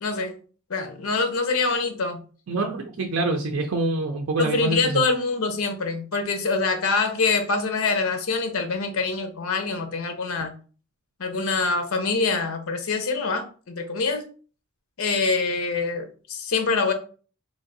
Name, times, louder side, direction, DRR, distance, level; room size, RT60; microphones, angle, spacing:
voice 1, 0.0-0.4 0.7-2.2 4.4-10.5 11.2-14.2 15.0-16.9, left 4 dB, 85° left, 0.6 m, -25 dB
voice 2, 2.5-5.0, right 2 dB, 75° right, 0.5 m, -26 dB
3.2 x 2.6 x 3.9 m
head